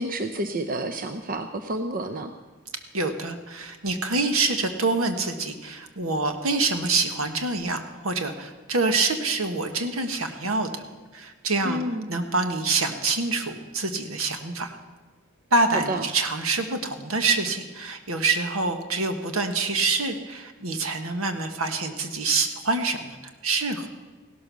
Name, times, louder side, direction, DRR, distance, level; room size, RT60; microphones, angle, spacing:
voice 1, 0.0-2.3 11.6-12.1 15.7-16.0, right 1 dB, 45° right, 7 dB, 0.7 m, -29 dB
voice 2, 2.9-10.8 11.1-11.8 12.1-14.8 15.5-23.2 23.4-23.9, right 3 dB, 85° right, 7 dB, 1.4 m, -26 dB
16.5 x 12.5 x 6.2 m, 1.3 s
head